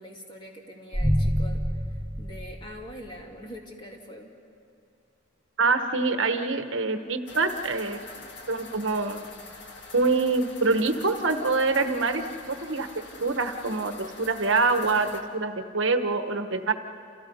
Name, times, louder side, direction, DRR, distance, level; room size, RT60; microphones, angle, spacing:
voice 1, 0.0-1.6 2.2-4.3, equal, 25° left, 0 dB, 2.6 m, -43 dB
sound 1, 0.9-3.2, equal, ahead, 1.6 m, -27 dB
voice 2, 5.6-8.0 8.5-9.2 9.9-16.7, right 3 dB, 75° right, 7 dB, 1.2 m, -25 dB
sound 2, 7.3-15.2, left 3 dB, 60° left, 2.1 m, -45 dB
29.5 x 29.0 x 5.5 m, 2.6 s
head